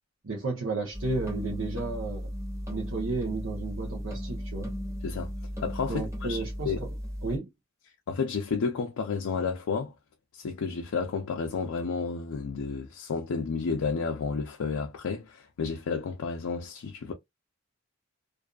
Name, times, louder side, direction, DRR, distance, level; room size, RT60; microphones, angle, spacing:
voice 1, 0.2-2.3 2.7-4.7 5.9-6.9 7.2-7.5, right 3 dB, 70° right, 0.7 m, -33 dB
sound 1, 0.9-7.4, equal, 15° right, 0.9 m, -36 dB
voice 2, 5.6-6.8 8.1-9.9 10.3-17.1, left 5 dB, 90° left, 0.4 m, -31 dB
2.5 x 2.4 x 2.2 m
head